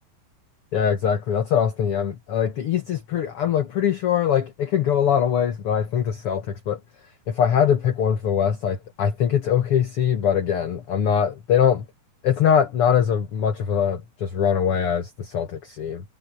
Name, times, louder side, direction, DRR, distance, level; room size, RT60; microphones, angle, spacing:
voice 1, 0.7-6.8 7.3-11.9 12.2-16.0, left 8 dB, 50° left, 2.2 m, -22 dB
omnidirectional pair, 3.5 m